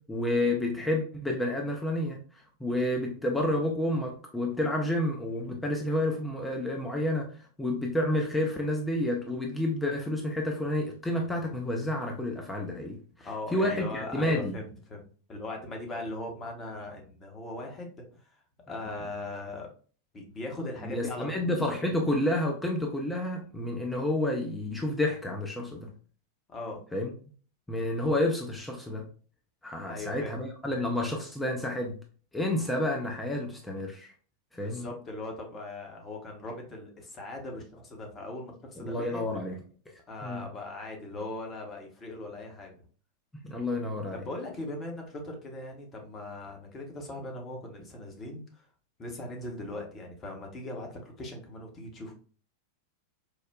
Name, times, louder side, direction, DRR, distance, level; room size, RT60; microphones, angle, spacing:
voice 1, 0.1-14.6 20.8-25.9 26.9-27.1 27.7-29.1 29.6-32.0 32.3-34.1 34.5-34.9 38.8-39.6 39.9-40.5 43.4-44.2, left 1 dB, 10° left, 1 dB, 0.5 m, -30 dB
voice 2, 13.2-17.9 18.2-18.3 18.7-19.7 20.1-21.5 26.5-26.8 29.8-30.3 34.6-39.2 40.1-42.8 44.1-48.7 49.0-52.1, left 2 dB, 25° left, 1 dB, 0.9 m, -39 dB
4.8 x 2.1 x 2.2 m, 0.42 s
figure-of-eight pair, 90°, 0 cm